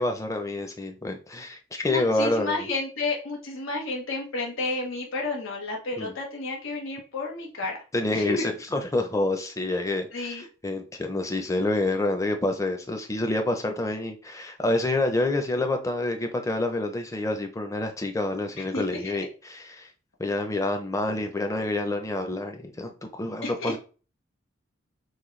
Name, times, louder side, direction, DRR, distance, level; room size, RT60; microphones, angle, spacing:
voice 1, 0.0-2.6 6.0-6.1 7.9-19.9 20.2-23.8, left 2 dB, 15° left, 0.6 m, -28 dB
voice 2, 1.9-7.8 8.1-8.4 10.1-10.4 18.6-19.3 23.4-23.8, left 3 dB, 85° left, 1.2 m, -31 dB
6.3 x 2.3 x 3.2 m
head